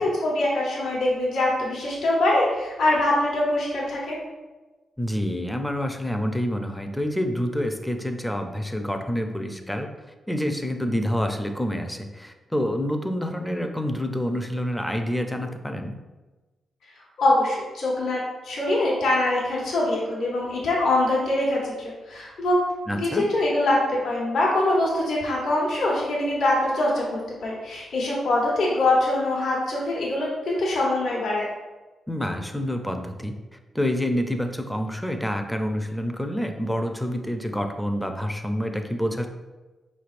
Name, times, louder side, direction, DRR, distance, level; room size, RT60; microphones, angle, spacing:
voice 1, 0.0-4.2 17.2-22.6 22.9-31.4, left 1 dB, 75° left, -4 dB, 1.1 m, -23 dB
voice 2, 5.0-16.0 22.9-23.3 32.1-33.3 33.7-39.3, equal, 5° left, 5 dB, 0.4 m, -27 dB
5.2 x 3.2 x 2.5 m, 1.2 s
cardioid pair, 95°, 0 cm